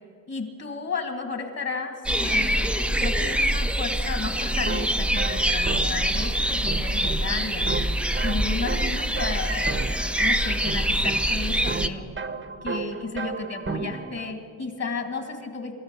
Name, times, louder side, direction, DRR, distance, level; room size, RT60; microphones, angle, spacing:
voice 1, 0.3-7.7 8.2-12.1 12.6-15.8, left 4 dB, 40° left, 5 dB, 2.4 m, -33 dB
sound 1, 2.0-11.9, right 1 dB, 5° right, 0.6 m, -25 dB
sound 2, 4.5-14.3, right 4 dB, 30° right, 1.0 m, -35 dB
24.0 x 14.0 x 8.4 m, 2.3 s
wide cardioid pair, 110°, 39 cm